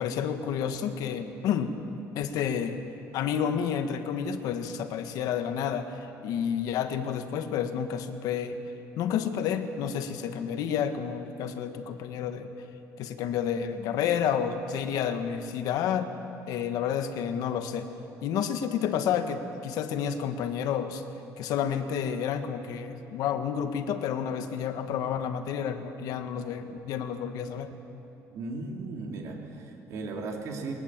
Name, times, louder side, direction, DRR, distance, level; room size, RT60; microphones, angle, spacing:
voice 1, 0.0-1.7 2.1-2.8 3.1-8.6 9.0-12.5 13.0-16.1 16.5-17.9 18.2-21.0 21.4-27.7, left 8 dB, 65° left, 8 dB, 1.4 m, -30 dB
voice 2, 28.3-30.7, right 3 dB, 50° right, 1 dB, 2.5 m, -36 dB
21.5 x 19.0 x 7.4 m, 2.9 s
cardioid pair, 175°, 7 cm